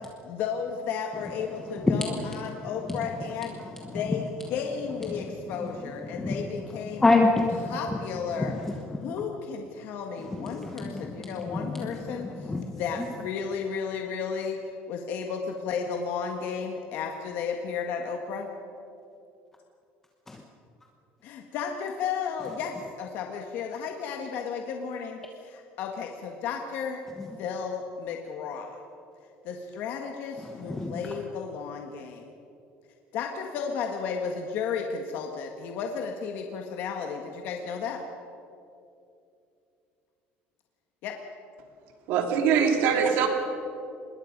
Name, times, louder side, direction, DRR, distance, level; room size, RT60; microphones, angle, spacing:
voice 1, 0.2-3.6 3.9-7.0 7.7-8.5 9.0-12.3 12.7-14.6 14.9-18.5 21.2-25.2 25.8-27.0 27.4-28.7 29.5-32.2 33.1-38.0 41.0-41.1, left 6 dB, 55° left, 3 dB, 1.6 m, -33 dB
voice 2, 2.5-3.0 3.9-4.1 5.1-5.3 5.6-5.7 6.0-6.5 6.9-8.0 8.4-9.1 10.2-12.8 30.4-31.0, left 2 dB, 10° left, 2 dB, 1.1 m, -28 dB
voice 3, 42.1-43.3, right 7 dB, 65° right, 4 dB, 2.8 m, -22 dB
25.5 x 21.0 x 5.3 m, 2.7 s
cardioid pair, 175°, 4 cm